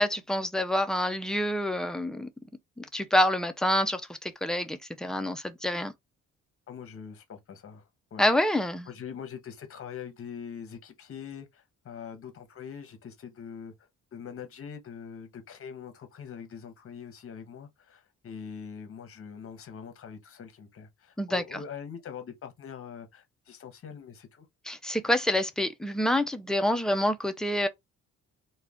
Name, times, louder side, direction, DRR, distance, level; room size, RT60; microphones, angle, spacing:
voice 1, 0.0-2.3 2.8-5.9 8.2-8.9 21.2-21.6 24.7-27.7, left 1 dB, ahead, 0.4 m, -27 dB
voice 2, 6.7-8.2 8.9-24.5, left 7 dB, 45° left, 0.9 m, -43 dB
2.4 x 2.2 x 3.4 m
cardioid pair, 90°, 30 cm